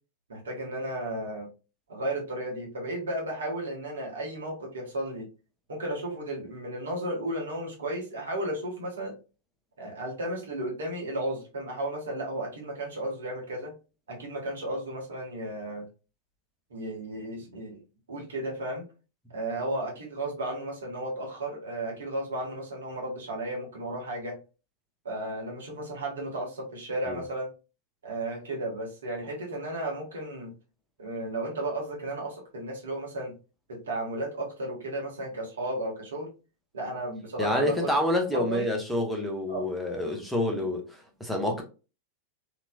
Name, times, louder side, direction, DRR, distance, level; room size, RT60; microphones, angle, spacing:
voice 1, 0.3-1.5 1.9-5.3 5.7-9.1 9.8-13.7 14.1-15.9 16.7-17.8 18.1-18.8 19.3-24.4 25.0-27.5 28.0-30.5 31.0-33.3 33.7-36.3 36.7-37.9 38.3-38.7 39.5-39.7, right 1 dB, 65° right, 1.4 m, -34 dB
voice 2, 37.4-41.6, left 1 dB, ahead, 0.9 m, -28 dB
3.0 x 2.9 x 2.3 m
figure-of-eight pair, 90°, 0 cm